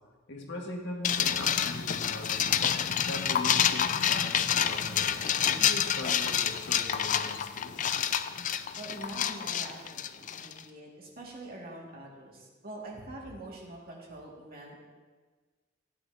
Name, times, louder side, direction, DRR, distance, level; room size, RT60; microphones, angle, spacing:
voice 1, 0.3-2.6 3.0-7.8, left 1 dB, 60° left, 0 dB, 1.8 m, -40 dB
sound 1, 1.0-10.6, left 9 dB, 40° left, 0.4 m, -28 dB
voice 2, 8.8-14.8, right 1 dB, 50° right, -2 dB, 2.1 m, -44 dB
14.5 x 9.8 x 2.8 m, 1.4 s
head